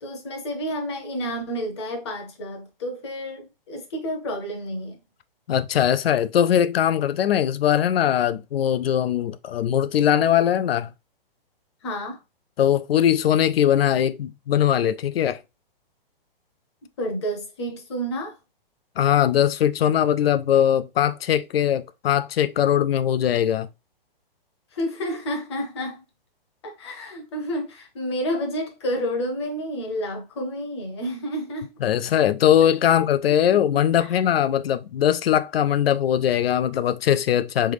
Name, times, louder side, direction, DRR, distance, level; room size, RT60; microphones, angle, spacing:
voice 1, 0.0-5.0 11.8-12.2 17.0-18.4 24.7-26.0 26.6-31.7 32.9-33.0 33.5-33.6 34.0-34.1, equal, 30° left, 0.8 m, -30 dB
voice 2, 5.5-10.9 12.6-15.4 19.0-23.7 31.8-37.7, left 10 dB, 80° left, 0.5 m, -21 dB
3.6 x 3.3 x 3.3 m
hypercardioid pair, 175°, 29 cm